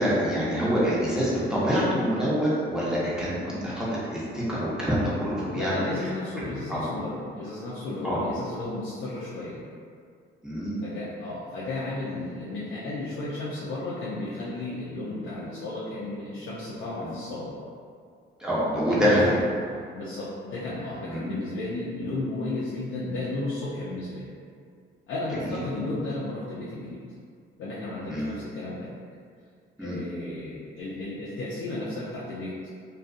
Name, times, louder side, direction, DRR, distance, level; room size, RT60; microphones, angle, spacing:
voice 1, 0.0-5.9 6.3-6.4 6.7-6.8 8.0-8.2 10.4-10.8 17.0-17.1 18.4-19.3 20.7-20.8 21.1-21.3 25.3-25.6 28.1-28.4 29.8-30.0, equal, 5° right, -9 dB, 0.8 m, -26 dB
voice 2, 5.5-9.6 10.8-17.5 18.9-19.4 19.7-24.3 25.1-27.0 27.6-29.0 29.8-32.7, left 2 dB, 75° left, -8 dB, 0.5 m, -34 dB
2.5 x 2.3 x 2.4 m, 2.2 s
cardioid pair, 90°, 20 cm